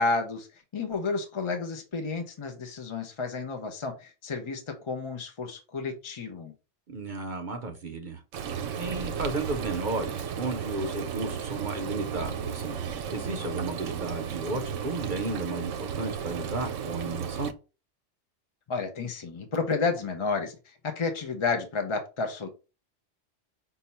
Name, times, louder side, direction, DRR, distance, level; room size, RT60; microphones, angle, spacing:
voice 1, 0.0-6.5 18.7-22.5, left 4 dB, 35° left, 0.5 m, -31 dB
voice 2, 6.9-8.2 8.7-12.8 13.1-17.5, right 3 dB, 50° right, 0.7 m, -33 dB
Frying (food), 8.3-17.5, right 7 dB, 90° right, 1.0 m, -34 dB
5.5 x 2.2 x 4.1 m
omnidirectional pair, 1.3 m